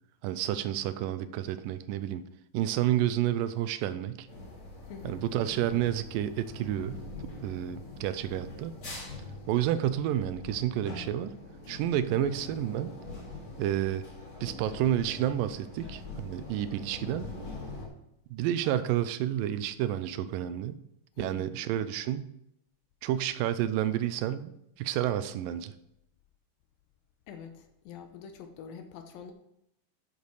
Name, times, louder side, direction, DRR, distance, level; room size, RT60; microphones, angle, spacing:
voice 1, 0.2-2.2 2.5-4.3 5.0-7.0 7.4-8.7 9.5-11.3 11.7-12.9 13.6-14.0 14.4-17.3 18.3-20.8 21.2-22.3 23.0-24.5 24.8-25.7, right 12 dB, 80° right, 12 dB, 2.1 m, -30 dB
sound 1, 4.3-17.9, left 3 dB, 30° left, 2.7 m, -43 dB
voice 2, 4.9-5.2 21.2-21.5 27.3-29.3, left 7 dB, 75° left, 7 dB, 2.5 m, -45 dB
10.5 x 7.0 x 4.7 m, 0.80 s
omnidirectional pair, 4.3 m